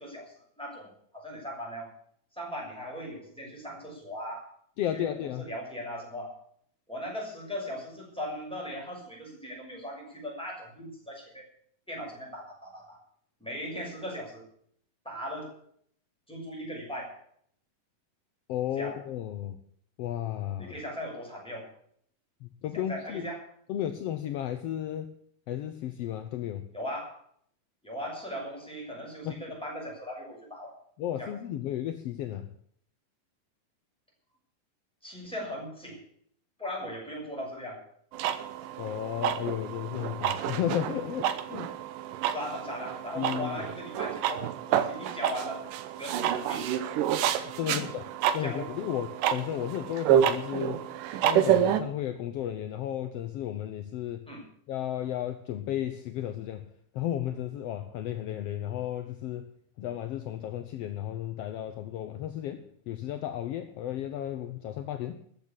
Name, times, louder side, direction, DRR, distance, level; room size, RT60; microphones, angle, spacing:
voice 1, 0.0-1.9 2.4-4.5 4.9-6.3 6.9-11.5 11.9-13.0 13.4-14.4 15.0-15.5 16.3-17.1 18.8-19.0 20.6-21.7 22.9-23.4 26.7-27.2 27.8-30.7 31.2-31.4 35.0-36.0 36.6-37.8 42.3-45.6 46.0-46.7 47.6-47.8 48.4-48.7 54.3-54.4, equal, ahead, -2 dB, 6.3 m, -38 dB
voice 2, 4.8-5.5 18.5-19.6 20.0-20.7 22.4-23.3 23.7-25.1 25.5-26.6 29.2-29.4 31.0-32.5 38.8-41.7 43.1-43.6 47.4-48.0 48.3-50.8 51.2-54.3 54.7-56.6 56.9-59.5 59.8-65.2, left 11 dB, 75° left, 8 dB, 1.5 m, -34 dB
sound 1, 38.1-51.8, right 10 dB, 80° right, 2.5 m, -29 dB
14.0 x 8.9 x 8.6 m, 0.63 s
omnidirectional pair, 3.8 m